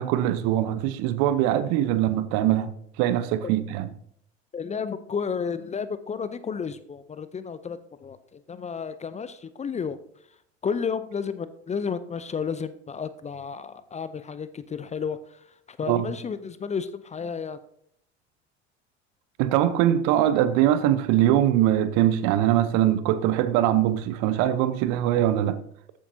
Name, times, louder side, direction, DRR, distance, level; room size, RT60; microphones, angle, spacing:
voice 1, 0.0-3.9 15.9-16.0 19.4-25.6, right 12 dB, 55° right, 0.8 m, -22 dB
voice 2, 4.5-10.0 10.6-15.4 15.7-17.6, left 6 dB, 20° left, 0.5 m, -32 dB
14.5 x 8.4 x 2.7 m
hypercardioid pair, 70°, 34 cm